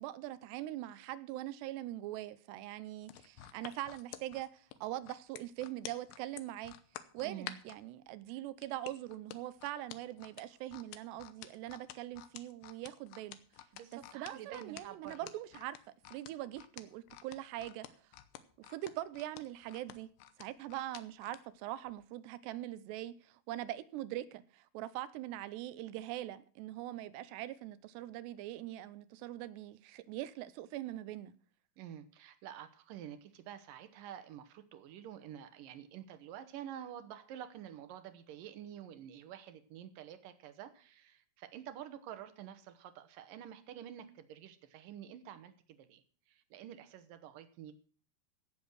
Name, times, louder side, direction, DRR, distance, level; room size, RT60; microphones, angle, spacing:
voice 1, 0.0-6.7 7.1-13.4 13.9-15.8 16.1-17.9 18.6-20.1 20.4-31.3, right 14 dB, 90° right, 2.9 m, -42 dB
sound 1, 3.0-7.8 8.6-21.4 21.9-22.0, left 13 dB, 80° left, 3.0 m, -49 dB
voice 2, 7.2-7.6 8.3-8.4 13.7-15.3 31.8-47.7, right 10 dB, 65° right, 2.4 m, -49 dB
16.5 x 7.3 x 6.3 m
omnidirectional pair, 4.8 m